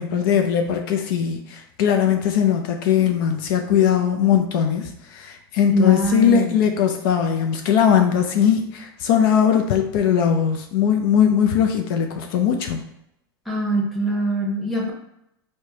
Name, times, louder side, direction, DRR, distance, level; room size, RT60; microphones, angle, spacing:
voice 1, 0.0-12.8, left 8 dB, 60° left, 4 dB, 0.4 m, -20 dB
voice 2, 5.7-6.6 13.5-14.9, equal, ahead, -2 dB, 0.9 m, -22 dB
4.6 x 2.1 x 2.8 m, 0.81 s
hypercardioid pair, 115°, 13 cm